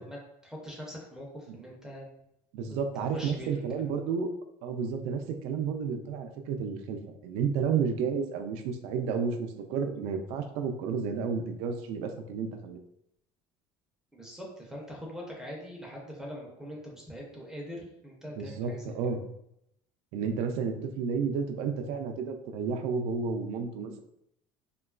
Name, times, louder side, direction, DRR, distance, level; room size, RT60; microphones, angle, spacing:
voice 1, 0.0-2.1 2.7-4.1 14.1-19.1, equal, 5° right, -2 dB, 0.5 m, -43 dB
voice 2, 2.5-4.3 4.6-12.8 18.4-19.2 20.1-24.0, right 6 dB, 75° right, 6 dB, 0.4 m, -31 dB
3.0 x 2.2 x 2.3 m, 0.77 s
cardioid pair, 150°, 11 cm